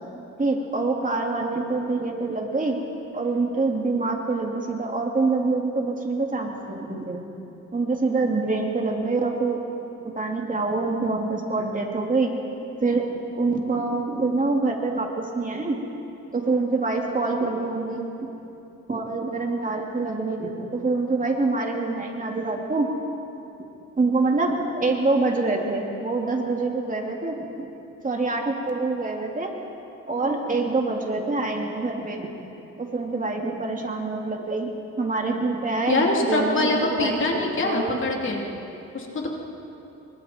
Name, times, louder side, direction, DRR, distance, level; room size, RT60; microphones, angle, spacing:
voice 1, 0.4-2.8 3.1-7.2 7.7-9.6 10.0-12.3 12.8-13.0 13.4-15.8 16.3-18.1 18.9-22.9 24.0-27.7 28.0-29.5 30.1-32.3 32.8-34.7 35.0-38.0, right 3 dB, 25° right, 1 dB, 2.8 m, -25 dB
voice 2, 35.9-38.4 38.9-39.3, left 2 dB, 40° left, -1 dB, 3.5 m, -24 dB
26.0 x 24.0 x 4.5 m, 2.8 s
cardioid pair, 90°, 30 cm